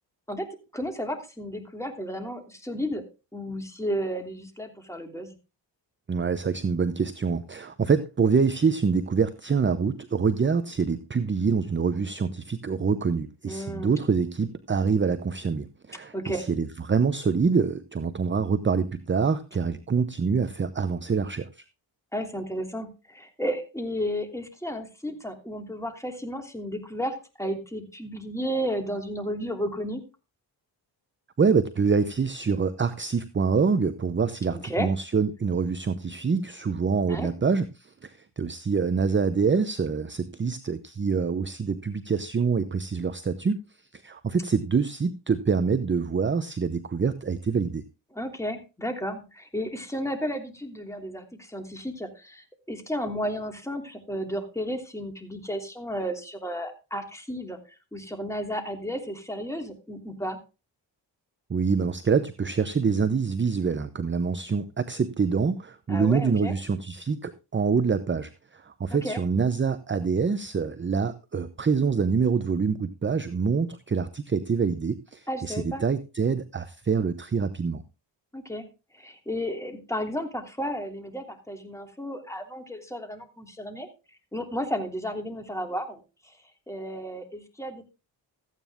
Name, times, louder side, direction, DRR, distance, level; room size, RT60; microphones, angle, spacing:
voice 1, 0.7-3.0 3.3-5.3 13.5-14.0 16.1-16.4 22.1-30.0 34.5-34.9 37.1-37.3 48.1-57.6 57.9-60.4 65.9-66.5 68.9-69.2 75.3-75.8 78.3-78.6 78.9-83.9 84.3-86.3 86.7-87.8, equal, 5° left, 4 dB, 3.0 m, -33 dB
voice 2, 6.1-21.5 31.4-43.6 43.9-47.8 61.5-77.8, right 5 dB, 25° right, 13 dB, 0.8 m, -25 dB
14.0 x 9.2 x 3.6 m, 0.29 s
cardioid pair, 75°, 45 cm